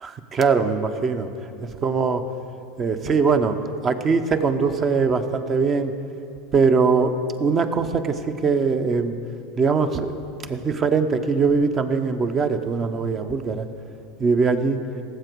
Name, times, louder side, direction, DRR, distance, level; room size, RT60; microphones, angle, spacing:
voice 1, 0.0-1.3 1.6-2.2 2.8-3.6 3.8-5.9 6.5-9.2 9.6-10.2 10.5-13.7 14.2-14.8, right 5 dB, 30° right, 9 dB, 0.8 m, -21 dB
17.5 x 7.9 x 4.7 m, 2.7 s
supercardioid pair, 120°, 0 cm